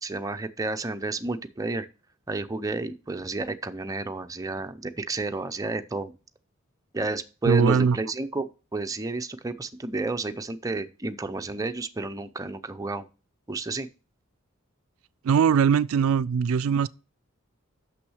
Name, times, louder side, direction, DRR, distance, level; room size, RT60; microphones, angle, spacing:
voice 1, 0.0-1.9 2.3-6.1 6.9-8.5 8.7-13.1 13.5-13.9, right 2 dB, 15° right, 0.5 m, -31 dB
voice 2, 7.4-8.0 15.2-16.9, right 7 dB, 75° right, 0.3 m, -21 dB
6.2 x 5.9 x 6.3 m
head